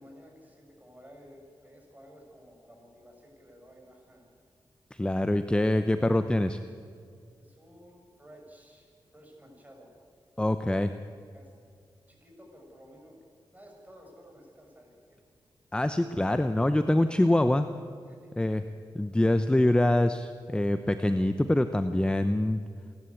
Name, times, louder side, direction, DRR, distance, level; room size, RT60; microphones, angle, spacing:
voice 1, 0.0-4.3 7.4-9.9 11.3-11.5 12.1-13.2 13.5-15.2 18.1-18.6, equal, 15° right, 1 dB, 6.6 m, -53 dB
voice 2, 4.9-6.6 10.4-10.9 15.7-17.7 18.4-18.6 19.0-22.6, left 1 dB, 10° left, 10 dB, 0.7 m, -25 dB
28.5 x 11.5 x 8.4 m, 2.4 s
cardioid pair, 65°, 9 cm